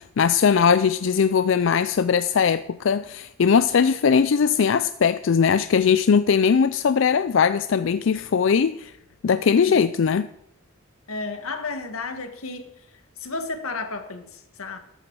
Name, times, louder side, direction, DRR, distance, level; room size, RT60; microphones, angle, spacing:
voice 1, 0.0-8.9 9.2-10.3, left 6 dB, 60° left, 0.4 m, -20 dB
voice 2, 11.1-12.7 13.2-14.8, left 3 dB, 90° left, 1.7 m, -32 dB
14.0 x 12.5 x 4.7 m
head